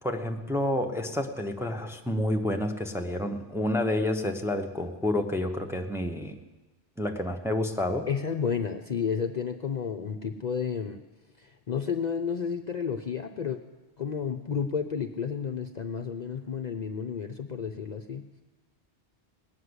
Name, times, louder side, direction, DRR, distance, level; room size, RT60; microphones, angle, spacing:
voice 1, 0.0-6.4 7.0-8.1, left 1 dB, 5° right, 3 dB, 0.8 m, -29 dB
voice 2, 8.1-11.0 11.4-13.6 14.0-18.3, left 6 dB, 45° left, 4 dB, 0.7 m, -31 dB
19.0 x 6.6 x 9.7 m, 1.2 s
omnidirectional pair, 1.1 m